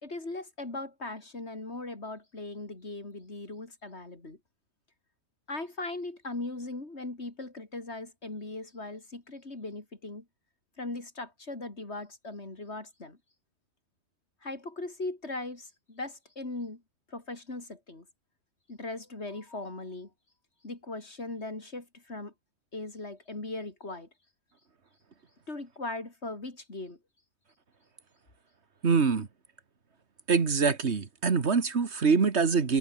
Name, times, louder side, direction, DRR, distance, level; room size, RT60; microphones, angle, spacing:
voice 1, 0.0-4.4 5.5-10.3 10.8-13.2 14.4-16.8 17.1-18.1 18.7-20.1 20.6-22.3 22.7-24.1 25.5-27.0, left 2 dB, 75° left, 4.4 m, -39 dB
voice 2, 28.8-29.3 30.3-32.8, right 5 dB, 75° right, 2.0 m, -24 dB
omnidirectional pair, 1.2 m